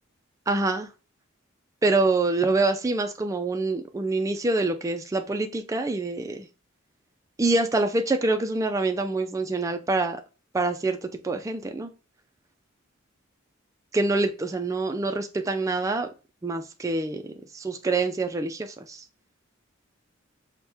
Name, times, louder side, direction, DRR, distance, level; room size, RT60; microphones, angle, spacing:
voice 1, 0.5-0.9 1.8-6.5 7.4-10.2 10.5-11.9 13.9-16.1 16.4-19.0, right 3 dB, 15° right, 0.3 m, -26 dB
4.3 x 2.2 x 3.3 m
head